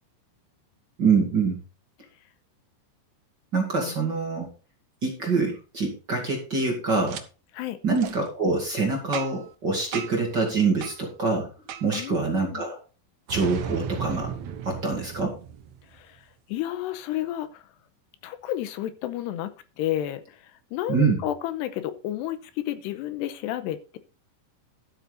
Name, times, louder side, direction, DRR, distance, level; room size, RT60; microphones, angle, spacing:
voice 1, 1.0-1.6 3.5-4.5 5.0-7.2 7.8-11.5 11.8-12.8 13.3-14.3 14.6-15.4 20.9-21.2, right 4 dB, 35° right, 0 dB, 2.2 m, -25 dB
Boom, 7.1-7.2 8.0-8.2 9.1-9.5 9.9-10.3 10.8-11.0 11.7-12.1 13.3-16.0, right 8 dB, 90° right, 1.6 m, -35 dB
voice 2, 11.9-12.6 15.9-17.6 18.2-24.0, left 13 dB, 85° left, 12 dB, 2.9 m, -32 dB
12.5 x 8.2 x 4.0 m, 0.34 s
omnidirectional pair, 4.9 m